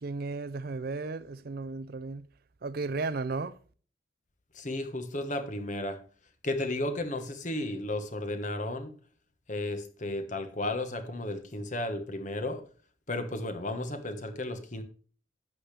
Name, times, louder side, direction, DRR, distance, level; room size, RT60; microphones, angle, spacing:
voice 1, 0.0-2.3 2.6-3.6, right 3 dB, 50° right, 0.5 m, -34 dB
voice 2, 4.5-6.0 6.4-8.9 9.5-12.6 13.1-14.8, left 1 dB, 40° left, 1.4 m, -33 dB
11.5 x 8.4 x 3.4 m
head